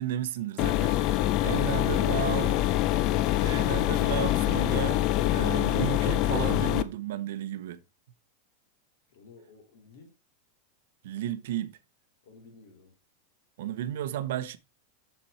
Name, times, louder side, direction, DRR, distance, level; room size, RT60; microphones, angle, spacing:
voice 1, 0.0-2.6 3.4-5.0 5.3-7.8 11.0-11.8 13.6-14.6, right 12 dB, 65° right, 0.8 m, -33 dB
sound 1, 0.6-6.8, left 14 dB, 30° left, 0.5 m, -25 dB
voice 2, 9.1-10.1 12.2-12.9, left 3 dB, 60° left, 4.1 m, -53 dB
7.3 x 6.8 x 4.2 m
supercardioid pair, 175°, 0 cm